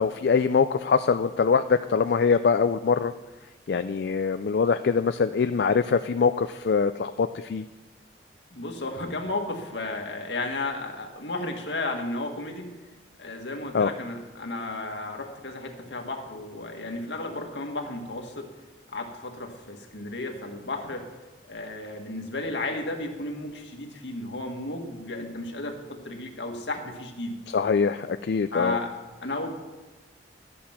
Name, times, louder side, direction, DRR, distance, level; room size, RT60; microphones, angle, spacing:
voice 1, 0.0-3.1 3.7-7.6 13.7-13.9 27.5-28.8, left 5 dB, 65° left, 10 dB, 0.4 m, -23 dB
voice 2, 8.5-12.7 13.2-18.5 18.9-21.1 21.5-27.4 28.5-28.9 29.2-29.5, left 2 dB, 85° left, 3 dB, 1.7 m, -33 dB
12.5 x 8.6 x 5.8 m, 1.2 s
head